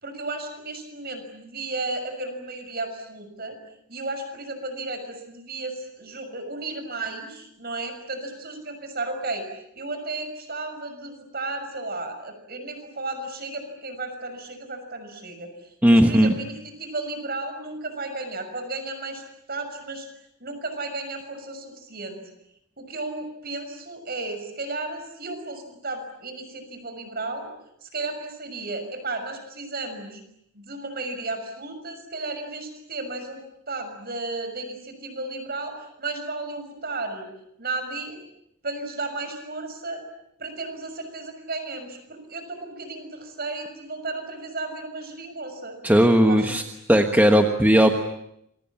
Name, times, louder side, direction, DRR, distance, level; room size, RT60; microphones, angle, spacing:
voice 1, 0.0-3.6 3.9-19.2 19.5-20.1 20.4-22.2 22.8-27.5 27.8-30.2 30.5-37.3 37.6-38.2 38.6-40.0 40.4-45.8 46.2-46.6, right 2 dB, 45° right, 7 dB, 6.3 m, -34 dB
voice 2, 15.8-16.3 45.8-46.6 46.9-47.9, equal, 10° right, 4 dB, 1.4 m, -17 dB
28.0 x 23.0 x 8.7 m, 0.78 s
head